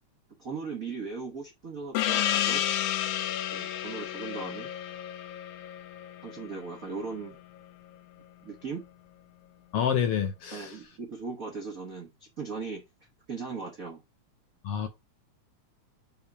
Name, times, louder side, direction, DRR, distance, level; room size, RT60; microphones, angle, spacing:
voice 1, 0.4-2.6 3.5-4.7 6.2-7.4 8.4-8.8 10.5-12.8 13.3-14.0, right 4 dB, 85° right, 0.7 m, -38 dB
Gong, 2.0-7.0, left 12 dB, 90° left, 2.1 m, -31 dB
voice 2, 9.7-10.8 14.6-14.9, left 8 dB, 70° left, 1.4 m, -28 dB
5.6 x 3.8 x 5.8 m
omnidirectional pair, 3.4 m